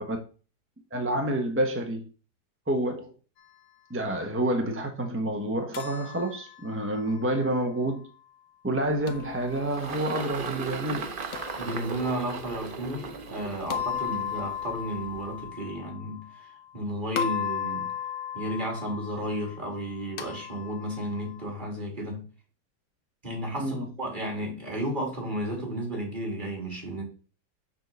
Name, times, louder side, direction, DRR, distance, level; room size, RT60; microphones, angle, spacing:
voice 1, 0.9-2.0 2.7-3.1 3.9-8.1 8.6-11.0 23.6-23.9, right 1 dB, 10° right, 0.6 m, -28 dB
sound 1, 5.7-7.8 9.1-10.1 11.3-12.5 13.7-16.8 17.2-21.6, left 8 dB, 80° left, 1.4 m, -36 dB
Engine, 8.9-15.5, right 5 dB, 45° right, 0.8 m, -38 dB
voice 2, 11.5-17.9 18.3-22.2 23.2-27.0, right 1 dB, 30° right, 2.8 m, -33 dB
6.7 x 4.6 x 6.7 m
omnidirectional pair, 1.8 m